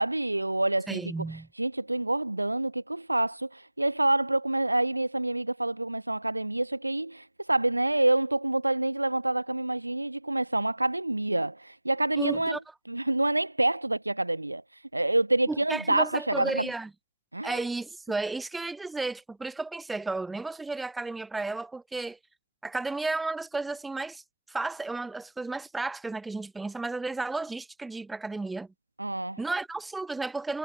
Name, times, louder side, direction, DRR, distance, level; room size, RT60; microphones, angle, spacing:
voice 1, 0.0-1.0 1.6-12.6 12.9-14.6 14.9-16.7 17.3-17.6 29.0-29.4, right 2 dB, 85° right, 2.2 m, -27 dB
voice 2, 0.9-1.5 12.2-12.6 15.5-16.9 17.4-22.2 22.6-24.2 24.5-28.7 29.4-30.6, right 3 dB, 10° right, 6.1 m, -33 dB
figure-of-eight pair, 90°, 0 cm